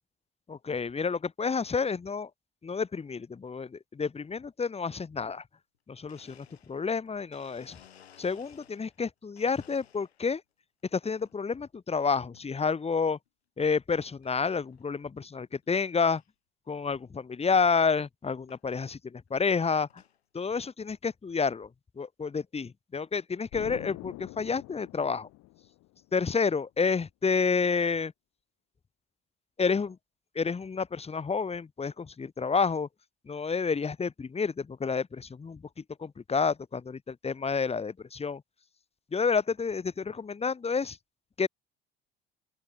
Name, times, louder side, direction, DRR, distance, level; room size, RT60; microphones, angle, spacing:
voice 1, 0.5-2.3 2.6-5.4 5.9-7.8 8.2-10.4 10.9-13.2 13.6-16.2 16.7-19.9 20.3-21.7 22.0-25.3 26.1-28.1 29.6-30.0 30.3-32.9 33.3-35.6 36.0-38.4 39.1-41.0 41.4-41.5, left 5 dB, 20° left, 1.1 m, -29 dB
Domestic sounds home sounds, 5.7-5.8 6.1-9.0 9.4-10.4 10.9-11.4 12.3-12.7 13.3-13.4 14.2-14.3 14.6-14.9 15.3-15.4 15.6-15.7 16.2-16.3 17.6-17.7 18.5-18.6 19.3-20.2, left 10 dB, 85° left, 2.1 m, -58 dB
Explosion, 23.5-26.2, left 20 dB, 60° left, 4.1 m, -45 dB
open air
figure-of-eight pair, 60°, 31 cm